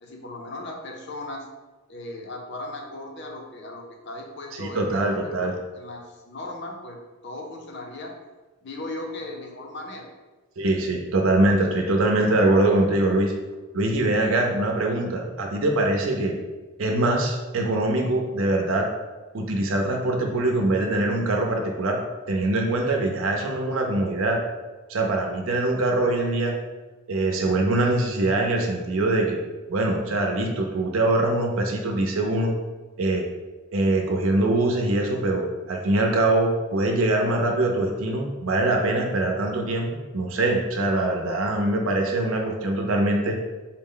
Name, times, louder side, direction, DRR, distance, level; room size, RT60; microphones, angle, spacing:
voice 1, 0.0-1.5 1.9-7.0 7.2-8.1 8.6-10.1, left 2 dB, 55° left, 1 dB, 0.5 m, -37 dB
voice 2, 4.5-5.6 10.6-13.3 13.7-16.4 16.8-18.9 19.3-22.0 22.3-24.4 24.9-26.5 27.1-29.4 29.7-32.5 33.0-33.3 33.7-43.4, right 2 dB, 70° right, 2 dB, 0.6 m, -23 dB
4.0 x 2.1 x 3.8 m, 1.2 s
head